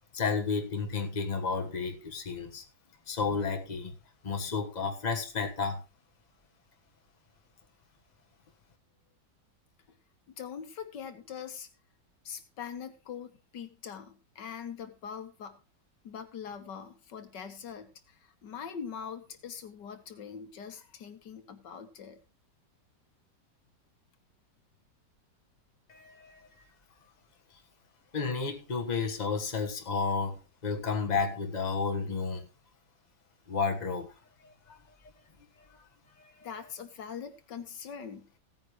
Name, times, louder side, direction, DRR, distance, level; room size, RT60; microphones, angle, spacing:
voice 1, 0.1-2.6 3.1-3.9 4.2-5.8 25.9-26.7 28.1-32.5 33.5-34.1 34.7-34.8 35.7-35.8, left 5 dB, 25° left, 1.5 m, -32 dB
voice 2, 10.4-11.7 12.2-15.6 16.0-22.2 36.4-38.3, left 7 dB, 80° left, 1.9 m, -42 dB
16.5 x 9.2 x 3.2 m
omnidirectional pair, 1.9 m